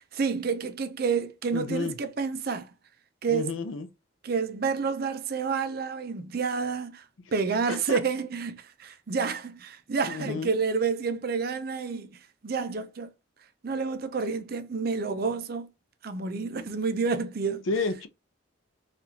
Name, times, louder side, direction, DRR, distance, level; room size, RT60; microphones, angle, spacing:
voice 1, 0.1-2.7 3.2-3.5 4.2-13.1 13.6-15.7 16.0-17.7, right 5 dB, 50° right, 0.5 m, -29 dB
voice 2, 1.5-1.9 3.3-3.9 7.7-8.0 10.1-10.5 17.7-18.1, left 4 dB, 75° left, 0.6 m, -31 dB
4.2 x 2.5 x 2.7 m
head